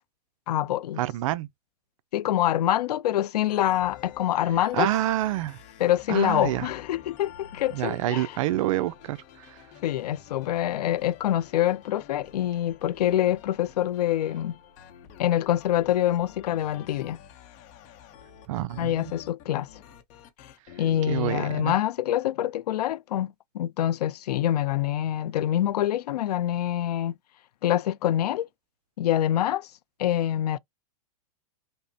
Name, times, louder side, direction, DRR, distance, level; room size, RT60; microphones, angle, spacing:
voice 1, 0.5-1.0 2.1-4.9 5.8-8.3 9.8-14.5 15.2-17.2 18.8-19.7 20.8-27.1 27.6-28.5 29.0-29.7 30.0-30.6, left 12 dB, 85° left, 0.4 m, -25 dB
voice 2, 1.0-1.5 4.7-5.6 6.1-6.7 7.7-9.6 18.5-19.1 21.1-21.8, right 15 dB, 60° right, 0.4 m, -28 dB
sound 1, 3.5-21.6, left 9 dB, 35° left, 0.8 m, -49 dB
5.2 x 2.1 x 2.7 m
hypercardioid pair, 140°, 20 cm